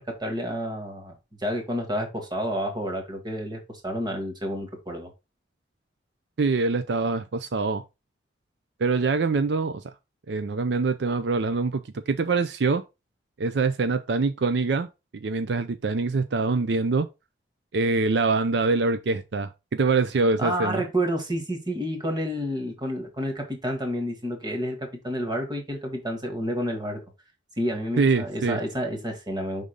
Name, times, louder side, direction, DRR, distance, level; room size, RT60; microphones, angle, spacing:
voice 1, 0.0-5.1 20.4-27.0 27.6-29.7, equal, 25° right, 1.7 m, -30 dB
voice 2, 6.4-7.8 8.8-9.8 10.3-12.8 13.4-17.1 17.7-20.8 28.0-28.6, right 4 dB, 65° right, 0.5 m, -24 dB
5.3 x 3.7 x 5.1 m
head